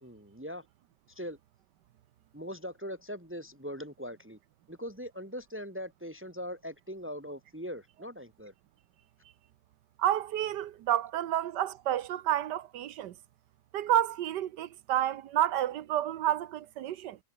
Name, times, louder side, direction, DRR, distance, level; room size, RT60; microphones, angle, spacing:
voice 1, 0.0-0.6 1.1-1.4 2.3-4.4 4.7-8.5, equal, 5° right, 2.9 m, -41 dB
voice 2, 10.0-13.1 13.7-17.2, right 12 dB, 80° right, 1.5 m, -30 dB
omnidirectional pair, 1.8 m